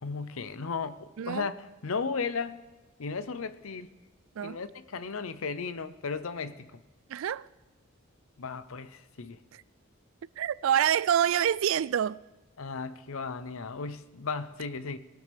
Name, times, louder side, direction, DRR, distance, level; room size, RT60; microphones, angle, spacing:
voice 1, 0.0-2.6 3.0-3.9 4.4-6.8 8.4-9.4 12.6-15.0, left 4 dB, 85° left, 0.7 m, -35 dB
voice 2, 1.2-1.5 4.4-4.6 7.1-7.5 10.4-12.2, right 9 dB, 75° right, 0.3 m, -26 dB
20.5 x 12.0 x 3.5 m
head